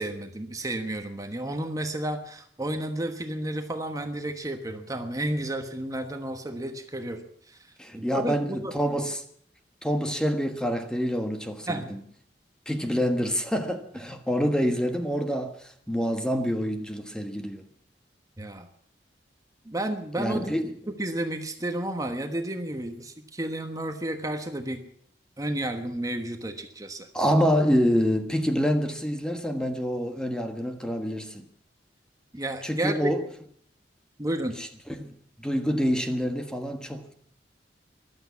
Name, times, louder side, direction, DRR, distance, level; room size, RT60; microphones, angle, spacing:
voice 1, 0.0-7.2 7.5-7.6 7.9-8.7 11.7-12.0 18.4-18.7 19.6-20.5 20.9-24.8 25.4-27.1 32.3-33.1 34.2-34.6, right 1 dB, 20° right, 1.3 m, -32 dB
voice 2, 7.8-9.2 9.8-12.0 12.6-17.6 20.2-20.7 27.1-31.4 32.6-33.2 34.6-34.7 35.0-37.1, equal, 5° left, 1.4 m, -27 dB
14.5 x 12.0 x 8.2 m
head